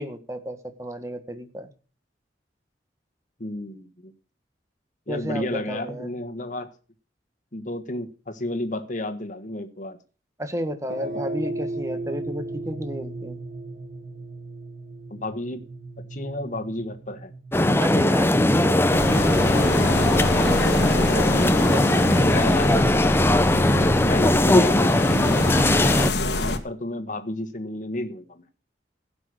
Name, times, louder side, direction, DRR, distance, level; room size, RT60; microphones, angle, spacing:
voice 1, 0.0-1.7 5.1-6.1 10.4-13.4 17.8-22.8, equal, 15° right, 1.5 m, -32 dB
voice 2, 3.4-4.1 5.1-6.7 7.5-10.0 15.1-15.6 16.0-17.3 22.2-22.8 23.6-26.0 26.4-28.5, left 1 dB, 45° left, 1.6 m, -32 dB
sound 1, 10.9-19.3, right 2 dB, 50° right, 2.6 m, -36 dB
sound 2, 17.5-26.1, left 1 dB, 15° left, 0.6 m, -19 dB
sound 3, 18.9-26.6, left 2 dB, 70° left, 1.6 m, -27 dB
16.0 x 6.2 x 6.5 m
head